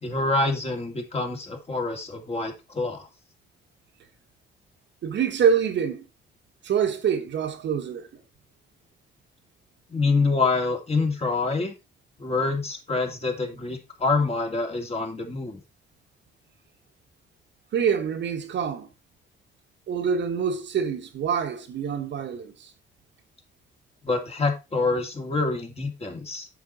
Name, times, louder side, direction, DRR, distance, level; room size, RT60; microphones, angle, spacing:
voice 1, 0.0-3.1 9.9-11.7 12.2-15.6 24.0-26.5, left 3 dB, 30° left, 2.6 m, -26 dB
voice 2, 5.0-6.1 6.6-8.1 17.7-18.9 19.9-22.7, right 7 dB, 65° right, 1.4 m, -25 dB
8.1 x 6.1 x 4.1 m
cardioid pair, 90°, 20 cm